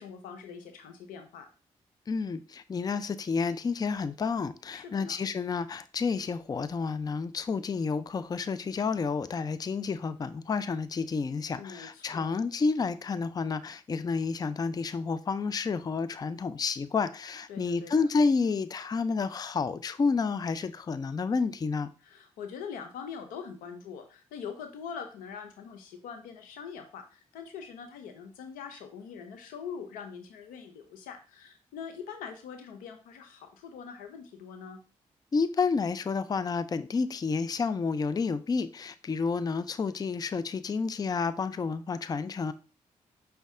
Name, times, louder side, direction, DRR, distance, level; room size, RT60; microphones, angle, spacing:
voice 1, 0.0-1.5 4.7-5.2 11.5-12.4 17.5-18.1 22.0-34.8, left 6 dB, 90° left, 0.6 m, -43 dB
voice 2, 2.1-21.9 35.3-42.5, left 4 dB, 30° left, 0.4 m, -30 dB
5.2 x 2.2 x 3.6 m
supercardioid pair, 50°, 14 cm